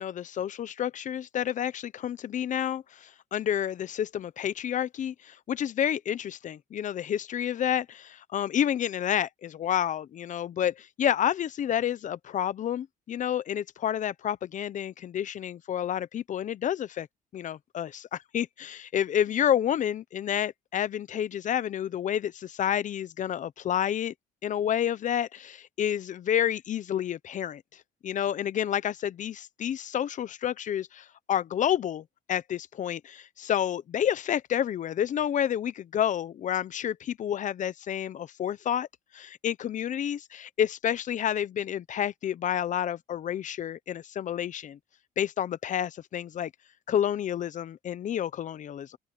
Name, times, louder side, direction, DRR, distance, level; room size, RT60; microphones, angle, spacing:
voice 1, 0.0-17.1 17.3-24.1 24.4-27.6 28.0-38.9 39.1-44.8 45.2-46.5 46.9-49.0, left 10 dB, 50° left, 0.8 m, -29 dB
open air
cardioid pair, 110°, 17 cm